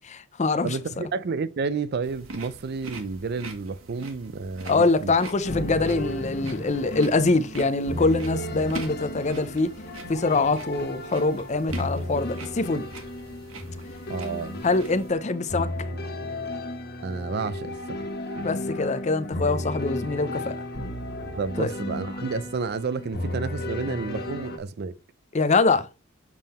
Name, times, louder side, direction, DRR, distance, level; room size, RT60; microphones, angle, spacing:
voice 1, 0.0-0.8 4.7-9.7 10.1-12.9 14.6-15.7 18.4-20.6 21.6-21.7 25.3-25.9, left 3 dB, 35° left, 0.5 m, -24 dB
voice 2, 0.6-5.1 14.1-14.6 17.0-18.0 21.4-24.9, right 4 dB, 50° right, 0.4 m, -30 dB
sound 1, 2.0-15.1, right 2 dB, 75° right, 1.5 m, -43 dB
sound 2, 5.4-24.6, left 1 dB, 50° left, 1.1 m, -34 dB
7.4 x 3.6 x 4.2 m
head